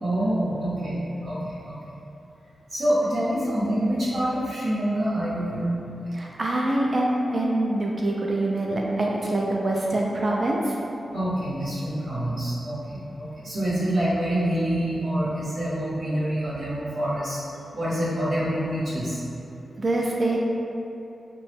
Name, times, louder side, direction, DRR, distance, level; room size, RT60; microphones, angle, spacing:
voice 1, 0.0-1.7 2.7-5.7 6.0-6.1 11.1-17.4 17.7-19.2, right 1 dB, 80° right, -11 dB, 0.7 m, -26 dB
voice 2, 6.1-10.8 19.8-20.4, right 1 dB, 40° right, -2 dB, 0.3 m, -25 dB
2.9 x 2.2 x 3.2 m, 2.8 s
wide cardioid pair, 85°, 0 cm